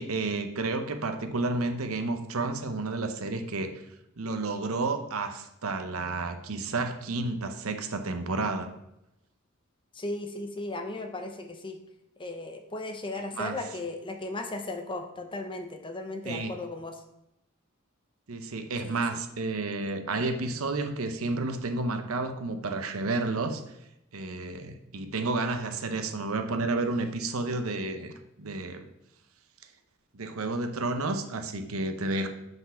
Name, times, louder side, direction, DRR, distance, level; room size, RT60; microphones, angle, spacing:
voice 1, 0.0-3.7 4.2-8.7 13.3-13.6 16.2-16.6 18.3-23.6 24.1-28.1 28.4-28.9 30.1-32.3, right 3 dB, 75° right, 7 dB, 0.8 m, -31 dB
voice 2, 9.9-11.8 12.2-17.0 18.8-19.0, left 2 dB, 25° left, 5 dB, 0.7 m, -36 dB
5.9 x 5.3 x 5.7 m, 0.84 s
head